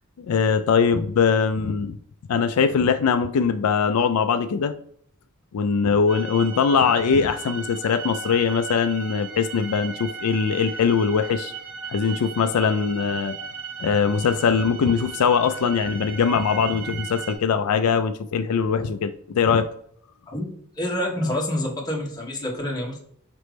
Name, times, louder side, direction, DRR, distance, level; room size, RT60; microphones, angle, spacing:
voice 1, 0.2-2.0 2.3-4.7 5.5-11.5 11.9-13.3 13.8-19.7, left 6 dB, 85° left, 9 dB, 0.4 m, -21 dB
sound 1, 6.1-17.3, right 5 dB, 80° right, 1.5 m, -36 dB
voice 2, 20.8-23.0, left 1 dB, 20° left, -3 dB, 1.4 m, -27 dB
5.1 x 3.2 x 3.2 m, 0.65 s
head